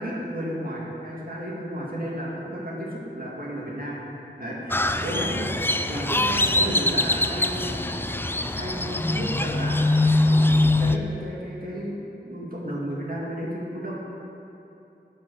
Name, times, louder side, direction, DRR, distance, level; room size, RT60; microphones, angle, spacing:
voice 1, 0.0-4.0 4.4-5.5 5.9-7.7 8.6-12.0 12.2-13.9, equal, 50° right, -5 dB, 2.1 m, -33 dB
Crow, 4.7-11.0, left 2 dB, 10° left, 0.4 m, -23 dB
10.5 x 5.0 x 6.2 m, 2.9 s
wide cardioid pair, 45°, 19 cm